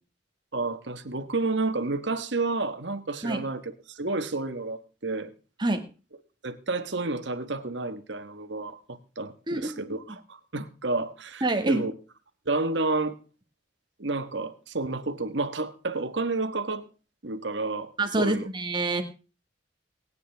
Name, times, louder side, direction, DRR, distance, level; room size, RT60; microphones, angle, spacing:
voice 1, 0.5-5.3 6.4-11.9 12.4-13.2 14.0-16.8 17.2-17.9 18.2-18.5, right 3 dB, 70° right, 1.4 m, -30 dB
voice 2, 11.4-11.8 18.0-19.0, right 2 dB, 25° right, 1.8 m, -26 dB
22.5 x 9.6 x 3.5 m
head